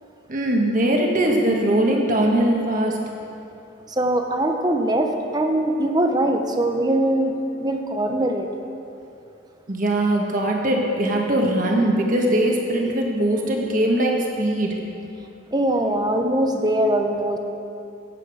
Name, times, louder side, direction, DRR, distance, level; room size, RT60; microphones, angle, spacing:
voice 1, 0.3-3.0 9.7-14.7, right 1 dB, 40° right, 0 dB, 1.5 m, -21 dB
voice 2, 3.9-7.3 7.6-8.5 15.5-17.4, right 1 dB, 20° right, 5 dB, 0.8 m, -22 dB
15.5 x 8.4 x 5.0 m, 2.7 s
head